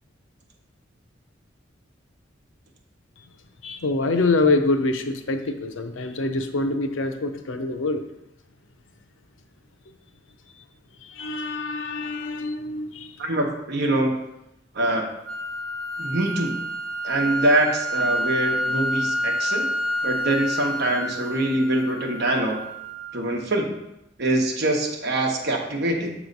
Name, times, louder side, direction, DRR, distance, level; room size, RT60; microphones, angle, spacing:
voice 1, 3.6-8.0 11.1-13.1, left 3 dB, 85° left, 7 dB, 0.6 m, -25 dB
voice 2, 13.2-14.2 14.7-15.0 16.0-16.5 17.0-19.7 20.0-22.6 23.1-23.8 24.2-26.1, right 1 dB, 60° right, 1 dB, 1.1 m, -24 dB
sound 1, 15.2-23.3, equal, 80° right, 0.7 m, -28 dB
7.0 x 3.1 x 5.2 m, 0.87 s
head